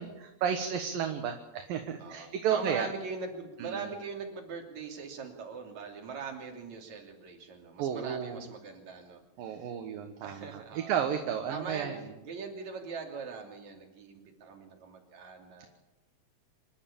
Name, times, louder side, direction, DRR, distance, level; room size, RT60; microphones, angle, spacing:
voice 1, 0.0-2.9 3.6-3.8 7.8-8.4 9.4-12.0, right 8 dB, 70° right, 5 dB, 2.9 m, -32 dB
voice 2, 2.0-9.7 10.2-11.0 11.5-11.9 12.2-15.7, right 5 dB, 50° right, 2 dB, 4.0 m, -41 dB
26.5 x 11.5 x 8.7 m, 1.0 s
omnidirectional pair, 4.4 m